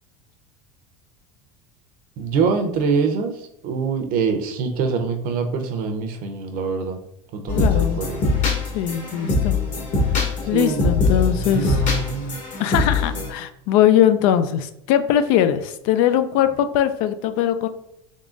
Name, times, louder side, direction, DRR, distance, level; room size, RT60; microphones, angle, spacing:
voice 1, 2.2-7.0 7.3-8.2 10.5-12.4, right 5 dB, 55° right, 6 dB, 0.7 m, -25 dB
voice 2, 7.5-8.0 8.7-9.6 10.5-11.8 12.6-17.7, left 10 dB, 70° left, 11 dB, 0.4 m, -20 dB
sound 1, 7.5-13.3, left 4 dB, 45° left, 1.2 m, -22 dB
3.7 x 3.7 x 2.5 m, 0.81 s
supercardioid pair, 125°, 18 cm